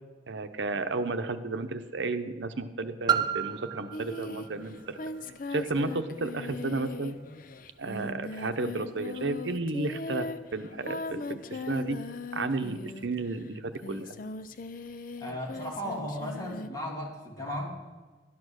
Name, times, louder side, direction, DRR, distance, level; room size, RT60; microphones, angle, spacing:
voice 1, 0.3-5.0 5.5-7.2 7.8-12.0 12.3-14.1, right 3 dB, 75° right, 8 dB, 0.8 m, -33 dB
Piano, 3.1-8.5 9.2-9.3, right 8 dB, 25° right, 0.5 m, -35 dB
Singing, 3.9-13.3 13.7-16.7, left 3 dB, 45° left, 0.5 m, -39 dB
voice 2, 15.2-17.8, equal, 20° left, -1 dB, 2.2 m, -35 dB
12.0 x 8.5 x 6.4 m, 1.3 s
head